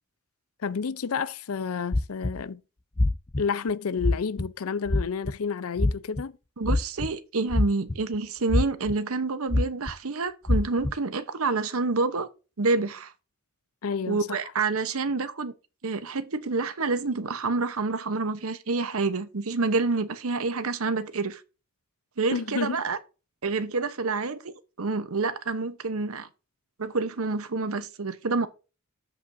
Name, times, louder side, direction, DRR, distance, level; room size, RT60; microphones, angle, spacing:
voice 1, 0.6-2.6 3.4-6.4 13.8-14.4 22.3-22.8, left 5 dB, 70° left, 0.6 m, -30 dB
sound 1, 1.9-2.4 3.0-3.4 4.0-4.5 4.9-5.3 5.8-6.2 6.6-7.1 7.5-8.2 8.5-8.9 9.5-9.9 10.5-10.9, left 2 dB, 20° left, 0.5 m, -23 dB
voice 2, 6.6-12.3 12.6-13.1 14.1-15.5 15.8-21.4 22.2-23.0 23.4-26.3 26.8-28.5, right 3 dB, 70° right, 0.9 m, -28 dB
14.0 x 5.1 x 2.6 m
head